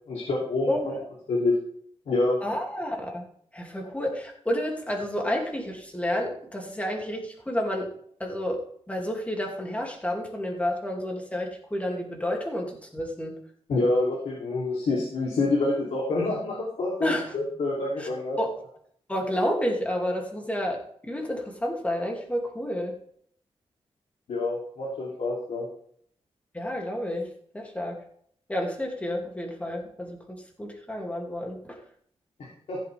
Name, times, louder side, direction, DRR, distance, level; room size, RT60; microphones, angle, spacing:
voice 1, 0.1-0.9 1.3-1.5 2.1-2.4 13.7-18.4 24.3-25.6 32.4-32.8, left 2 dB, 85° left, -4 dB, 3.0 m, -27 dB
voice 2, 0.7-1.0 2.4-3.2 3.5-7.9 8.2-13.4 17.0-17.3 18.0-18.1 18.4-18.5 19.1-22.9 26.5-27.3 27.5-28.0 28.5-31.8, left 1 dB, 10° left, 0 dB, 2.6 m, -30 dB
15.5 x 7.8 x 3.5 m, 0.63 s
wide cardioid pair, 115°, 11 cm